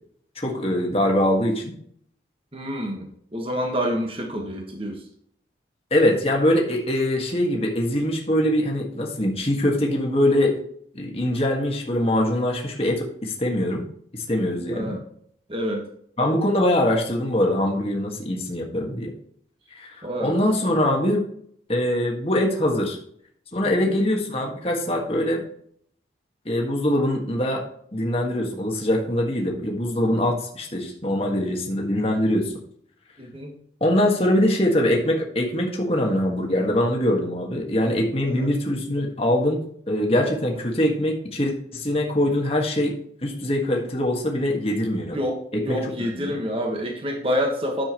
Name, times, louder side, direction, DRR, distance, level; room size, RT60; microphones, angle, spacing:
voice 1, 0.3-1.7 5.9-10.5 10.9-13.8 14.1-15.0 16.2-19.1 19.7-21.2 21.7-23.0 23.5-25.4 26.4-27.6 27.9-32.5 33.8-39.6 39.9-42.9 43.2-45.2 45.5-45.8 46.2-46.3, left 1 dB, 35° left, 0 dB, 1.7 m, -23 dB
voice 2, 2.5-5.0 14.7-15.0 15.5-15.8 20.0-20.3 23.6-23.9 33.2-33.5 38.2-38.5 40.5-40.6 45.1-47.8, equal, 30° right, 1 dB, 1.5 m, -28 dB
10.5 x 7.2 x 3.1 m, 0.63 s
head